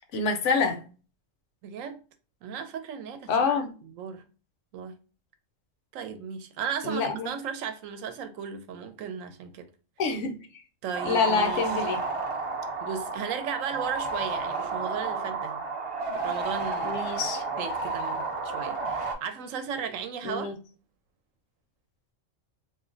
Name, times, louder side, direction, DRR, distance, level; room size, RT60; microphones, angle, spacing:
voice 1, 0.1-0.8 3.3-3.7 6.8-7.3 10.0-10.4 11.0-12.0 16.8-17.4 20.2-20.5, left 4 dB, 70° left, 0.9 m, -26 dB
voice 2, 1.6-2.0 2.4-4.2 4.7-5.0 5.9-9.7 10.8-11.6 12.8-15.6 16.1-17.0 17.6-20.5, right 7 dB, 80° right, 0.9 m, -36 dB
sound 1, 10.9-19.1, right 3 dB, 35° right, 0.5 m, -31 dB
2.5 x 2.0 x 3.7 m
omnidirectional pair, 1.4 m